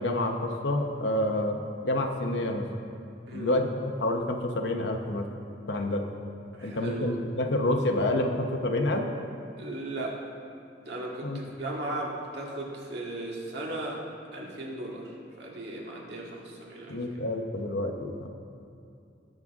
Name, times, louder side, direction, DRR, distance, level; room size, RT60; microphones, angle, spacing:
voice 1, 0.0-1.6 1.8-2.7 3.3-5.3 5.7-6.0 6.6-9.1 11.2-11.4 16.9-18.3, left 1 dB, 70° left, 3 dB, 0.9 m, -28 dB
voice 2, 6.5-7.2 9.6-10.2 10.9-14.0 14.3-15.1 15.4-17.0, right 2 dB, 65° right, -2 dB, 1.9 m, -36 dB
19.5 x 6.7 x 3.6 m, 2.6 s
head